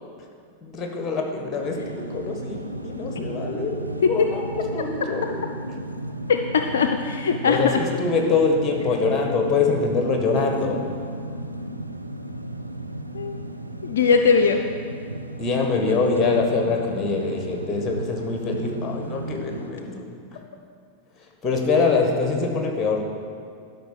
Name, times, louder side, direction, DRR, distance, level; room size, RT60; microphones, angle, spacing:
voice 1, 0.6-5.3 7.4-10.9 15.4-20.0 20.3-20.4 21.4-23.1, left 4 dB, 20° left, 3 dB, 1.6 m, -24 dB
sound 1, 1.6-19.7, right 1 dB, 90° right, 0.5 m, -34 dB
voice 2, 6.3-7.8 13.1-13.4 13.8-14.6, left 5 dB, 65° left, 5 dB, 0.5 m, -20 dB
12.0 x 5.3 x 6.3 m, 2.3 s
figure-of-eight pair, 90°, 0 cm